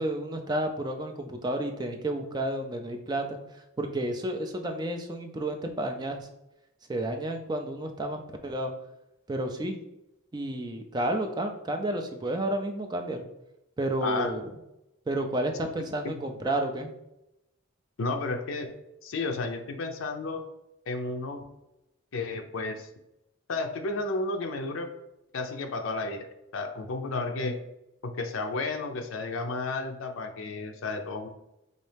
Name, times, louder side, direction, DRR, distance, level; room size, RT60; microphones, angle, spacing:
voice 1, 0.0-6.3 6.9-8.7 9.3-9.8 10.3-13.3 13.8-14.5 15.1-16.9, right 1 dB, 20° right, 4 dB, 0.4 m, -31 dB
voice 2, 14.0-14.3 16.0-16.2 18.0-18.8 19.0-20.4 20.9-21.4 22.1-22.9 23.5-24.9 25.3-27.6 28.0-31.3, left 3 dB, 70° left, 4 dB, 0.5 m, -32 dB
4.1 x 2.7 x 3.3 m, 0.88 s
head